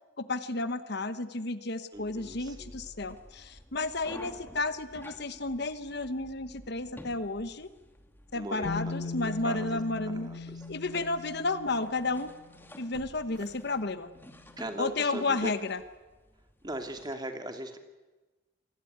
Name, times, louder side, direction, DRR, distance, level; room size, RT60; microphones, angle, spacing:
voice 1, 0.2-7.7 8.3-12.3 12.8-14.1 14.8-15.8, left 3 dB, 55° left, 11 dB, 1.2 m, -32 dB
sound 1, 1.9-17.1, equal, 10° left, 2.4 m, -52 dB
voice 2, 1.9-2.8 8.3-9.8 10.1-10.6 14.6-15.5 16.6-17.8, right 1 dB, 20° right, 5 dB, 2.7 m, -39 dB
Bass guitar, 8.7-12.6 13.7-13.8, left 3 dB, 70° left, 1.4 m, -39 dB
sound 2, 12.9-14.4 14.7-14.8, right 1 dB, 70° right, 2.4 m, -55 dB
27.5 x 20.5 x 9.5 m, 1.2 s
head